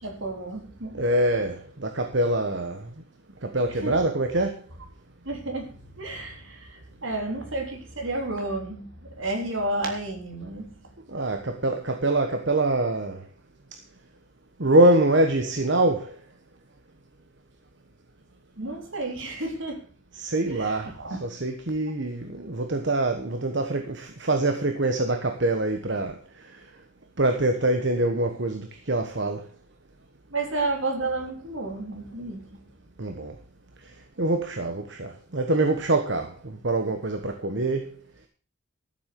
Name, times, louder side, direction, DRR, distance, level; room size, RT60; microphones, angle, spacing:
voice 1, 0.0-1.0 3.6-4.0 5.3-10.7 18.6-19.9 20.5-21.2 30.3-32.6, right 2 dB, 75° right, 3.6 m, -31 dB
voice 2, 0.9-2.9 3.4-4.6 11.1-13.2 14.6-16.1 20.2-20.9 21.2-26.2 27.2-29.5 33.0-33.3 34.2-37.9, right 2 dB, 60° right, 1.2 m, -24 dB
13.0 x 7.6 x 6.8 m
head